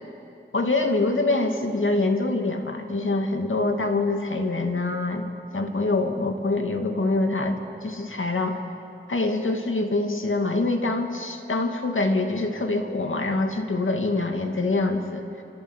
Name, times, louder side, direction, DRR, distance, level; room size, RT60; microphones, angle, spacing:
voice 1, 0.5-5.2 5.5-8.6 9.1-15.4, left 2 dB, 75° left, 4 dB, 2.4 m, -25 dB
27.0 x 26.5 x 8.3 m, 2.7 s
wide cardioid pair, 65°, 21 cm